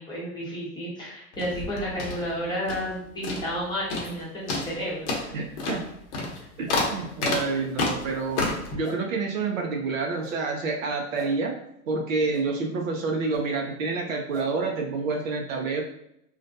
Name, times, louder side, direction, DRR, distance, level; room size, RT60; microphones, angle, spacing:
voice 1, 0.0-5.4 6.2-6.3, equal, 10° left, -7 dB, 0.8 m, -32 dB
sound 1, 1.3-3.0 3.2-3.6 3.9-4.2 4.5-8.7, left 3 dB, 50° left, 0.8 m, -30 dB
sound 2, 4.4-4.6 5.5-5.7 6.6-6.8 7.6-7.8 8.8-9.0 10.2-10.4 11.1-11.3 12.3-12.4 13.3-13.4 14.3-14.5, right 1 dB, 10° right, 0.4 m, -42 dB
voice 2, 5.3-5.8 6.6-8.5 8.7-11.6 11.9-15.8, right 4 dB, 60° right, 1 dB, 0.7 m, -28 dB
2.3 x 2.2 x 2.6 m, 0.79 s
hypercardioid pair, 105°, 45 cm